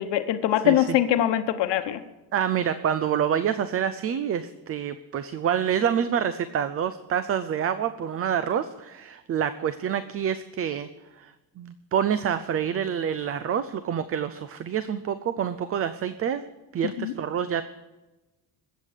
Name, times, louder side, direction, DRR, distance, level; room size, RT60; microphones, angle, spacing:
voice 1, 0.0-2.0 16.8-17.1, left 12 dB, 90° left, 8 dB, 1.1 m, -23 dB
voice 2, 2.3-10.9 11.2-11.3 11.6-16.4 16.7-17.6, right 8 dB, 35° right, 13 dB, 0.5 m, -27 dB
21.0 x 8.3 x 6.6 m, 1.1 s
cardioid pair, 170°, 41 cm